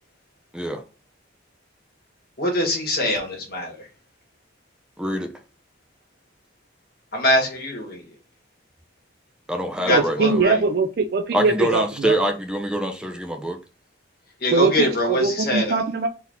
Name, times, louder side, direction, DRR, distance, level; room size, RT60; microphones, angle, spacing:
voice 1, 2.4-3.8 7.1-8.0 9.8-10.6 14.4-15.8, left 1 dB, 50° left, 1.5 m, -23 dB
voice 2, 5.0-5.3 9.5-10.4 11.3-13.6, right 1 dB, 5° right, 0.5 m, -25 dB
voice 3, 9.9-12.2 14.5-16.1, right 4 dB, 50° right, 0.4 m, -22 dB
4.1 x 2.7 x 3.6 m
head